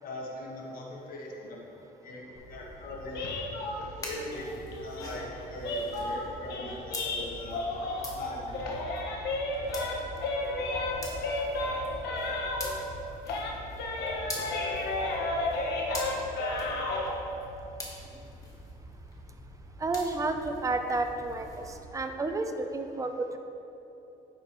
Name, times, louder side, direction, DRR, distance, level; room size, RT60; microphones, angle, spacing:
voice 1, 0.0-1.6 2.0-3.3 3.9-4.5 4.8-7.6 8.1-8.9, left 2 dB, 60° left, -2 dB, 1.5 m, -41 dB
sound 1, 2.3-21.8, left 1 dB, 20° left, 1.4 m, -44 dB
sound 2, 3.1-8.2 8.5-13.0 13.3-17.1, left 2 dB, 80° left, 1.1 m, -33 dB
sound 3, 7.7-12.1, right 3 dB, ahead, 1.0 m, -52 dB
voice 2, 19.8-21.5 21.9-23.4, right 3 dB, 20° right, 6 dB, 0.6 m, -30 dB
9.5 x 7.2 x 3.1 m, 2.9 s
cardioid pair, 110°, 17 cm